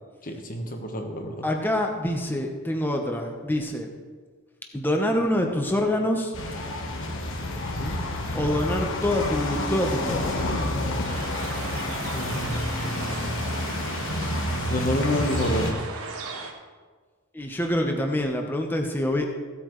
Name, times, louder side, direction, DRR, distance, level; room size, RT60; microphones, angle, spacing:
voice 1, 0.2-1.4 7.8-8.0 12.1-13.4 14.2-14.3 14.7-15.8, left 1 dB, 40° left, 4 dB, 1.2 m, -29 dB
voice 2, 1.4-3.9 4.7-6.3 8.3-10.4 17.3-19.3, left 1 dB, 10° left, 2 dB, 0.9 m, -26 dB
sound 1, 6.3-15.7, left 1 dB, 60° left, 1.3 m, -29 dB
sound 2, 11.0-16.5, right 3 dB, 80° right, 1.3 m, -36 dB
15.5 x 8.6 x 3.2 m, 1.5 s
head